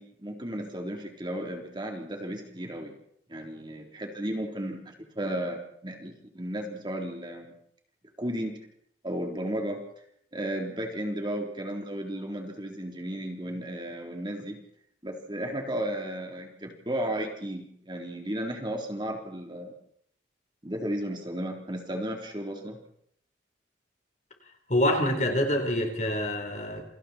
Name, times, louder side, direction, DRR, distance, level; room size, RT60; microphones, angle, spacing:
voice 1, 0.0-2.9 3.3-7.5 8.2-8.6 9.0-9.8 10.3-14.6 15.0-19.7 20.6-22.8, right 1 dB, 25° right, 2 dB, 3.6 m, -34 dB
voice 2, 24.7-26.8, left 1 dB, 40° left, 4 dB, 4.3 m, -26 dB
29.0 x 25.0 x 4.4 m, 0.69 s
head